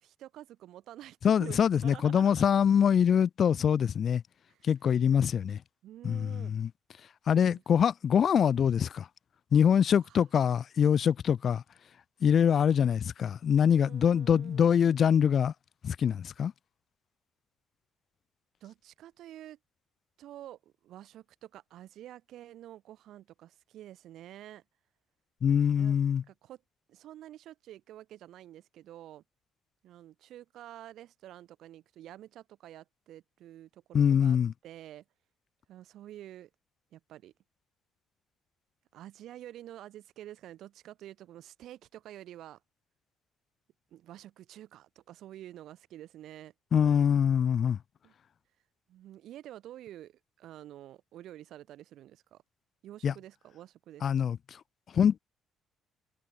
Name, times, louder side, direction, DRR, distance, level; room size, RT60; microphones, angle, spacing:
voice 1, 0.0-2.3 4.5-4.6 5.8-6.5 7.5-7.6 9.9-10.0 13.5-14.7 18.6-19.6 20.2-24.6 25.8-26.0 26.3-26.6 26.9-29.2 29.8-34.4 34.6-35.0 35.7-36.5 36.9-37.3 38.9-42.6 43.9-46.5 48.0-48.1 48.9-52.4 52.8-54.3, right 13 dB, 70° right, 0.8 m, -49 dB
voice 2, 1.2-4.2 4.6-5.6 6.0-6.7 7.3-9.1 9.5-11.6 12.2-15.5 15.8-16.5 25.4-26.2 33.9-34.5 46.7-47.8 53.0-53.1 54.0-54.4 54.9-55.2, left 8 dB, 45° left, 0.4 m, -24 dB
cardioid pair, 125°, 0 cm